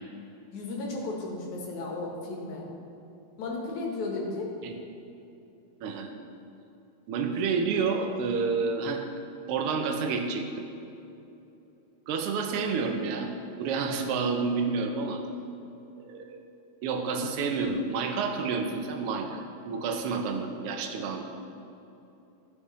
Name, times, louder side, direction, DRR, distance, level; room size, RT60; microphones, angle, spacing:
voice 1, 0.5-2.7 3.4-4.5, left 3 dB, 75° left, -2 dB, 2.7 m, -34 dB
voice 2, 5.8-6.1 7.1-9.0 9.5-10.6 12.1-13.3 13.6-15.2 16.1-16.4 16.8-21.2, right 4 dB, 70° right, 4 dB, 1.4 m, -29 dB
15.0 x 6.3 x 3.2 m, 2.9 s
omnidirectional pair, 3.4 m